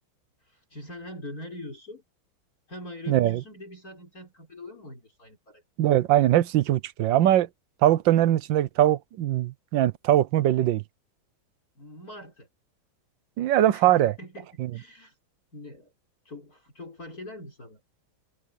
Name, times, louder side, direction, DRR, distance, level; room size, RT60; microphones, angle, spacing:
voice 1, 0.4-2.0 2.7-5.6 11.7-12.5 13.7-15.2 15.5-15.9 16.2-17.8, left 1 dB, 45° left, 6.8 m, -43 dB
voice 2, 3.1-3.4 5.8-7.5 7.8-10.8 13.4-14.1 14.6-14.7, right 13 dB, 70° right, 1.4 m, -21 dB
omnidirectional pair, 2.2 m